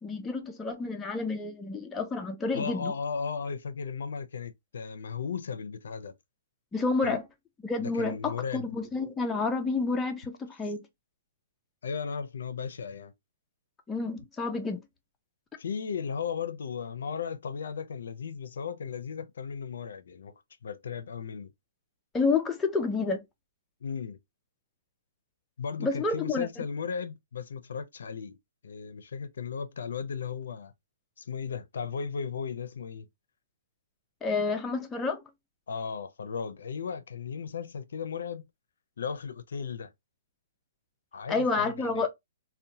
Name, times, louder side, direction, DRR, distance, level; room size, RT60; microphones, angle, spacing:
voice 1, 0.0-2.9 6.7-7.2 7.6-10.8 13.9-14.8 22.1-23.2 25.8-26.5 34.2-35.2 41.3-42.1, left 4 dB, 10° left, 0.3 m, -29 dB
voice 2, 2.5-6.1 7.0-7.2 7.8-8.8 11.8-13.1 15.6-20.3 20.6-21.5 23.8-24.2 25.6-28.4 28.6-30.7 31.2-33.1 35.7-38.5 39.0-39.9 41.1-42.1, left 6 dB, 75° left, 0.4 m, -36 dB
2.7 x 2.1 x 2.7 m
hypercardioid pair, 160°, 0 cm